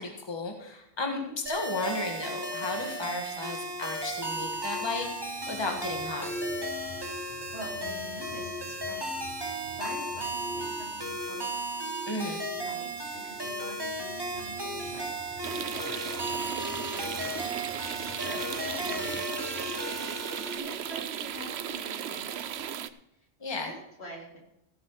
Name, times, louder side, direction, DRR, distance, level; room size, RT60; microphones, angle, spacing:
voice 1, 0.0-5.1 5.5-6.3 12.1-12.4 23.4-23.7, left 3 dB, 25° left, 3 dB, 1.7 m, -34 dB
sound 1, 1.5-20.6, right 1 dB, 25° right, 1.7 m, -35 dB
sound 2, 2.7-21.6, equal, 60° left, 3.2 m, -45 dB
voice 2, 7.5-9.3 9.7-11.5 12.0-17.5 17.9-20.0 20.5-21.1 21.3-22.9 23.2-24.4, equal, 80° left, -3 dB, 4.2 m, -46 dB
sound 3, 15.4-22.9, right 9 dB, 80° right, 1.0 m, -36 dB
15.5 x 8.6 x 4.8 m, 0.84 s
omnidirectional pair, 1.1 m